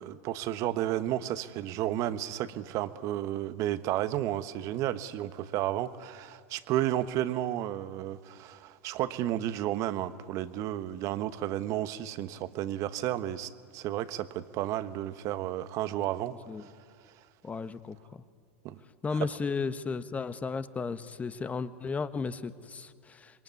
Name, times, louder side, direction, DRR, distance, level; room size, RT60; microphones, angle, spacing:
voice 1, 0.0-16.3 16.6-16.7 18.6-18.8, right 13 dB, 50° right, 13 dB, 1.2 m, -32 dB
voice 2, 17.4-18.2 19.0-23.4, left 4 dB, 20° left, 13 dB, 1.2 m, -34 dB
27.0 x 22.0 x 9.5 m, 2.2 s
hypercardioid pair, 90°, 7 cm